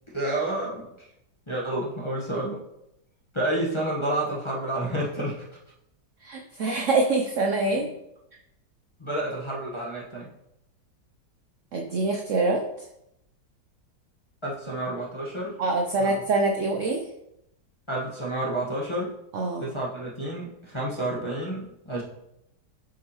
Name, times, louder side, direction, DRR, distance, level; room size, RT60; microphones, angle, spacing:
voice 1, 0.1-1.1 1.5-2.6 3.3-5.4 9.0-10.3 14.4-15.6 16.0-16.2 17.9-19.1 19.6-22.0, right 1 dB, 20° left, -5 dB, 0.9 m, -30 dB
voice 2, 6.2-7.9 11.7-12.6 15.6-17.0 19.3-19.7, right 3 dB, 65° right, 1 dB, 0.8 m, -25 dB
7.7 x 4.9 x 2.9 m, 0.82 s
omnidirectional pair, 1.8 m